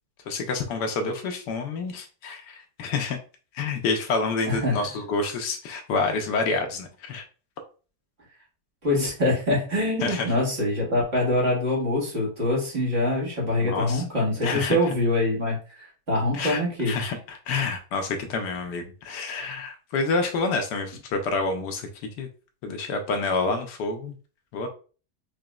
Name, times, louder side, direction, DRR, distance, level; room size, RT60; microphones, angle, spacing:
voice 1, 0.3-3.2 3.5-7.2 10.0-10.4 13.6-14.0 14.4-14.9 16.3-16.6 16.9-22.3 22.6-24.2 24.5-24.7, left 3 dB, 75° left, 5 dB, 1.2 m, -28 dB
voice 2, 4.5-4.8 8.8-17.0, left 1 dB, 40° right, -4 dB, 1.7 m, -24 dB
5.1 x 2.8 x 2.3 m, 0.37 s
omnidirectional pair, 1.9 m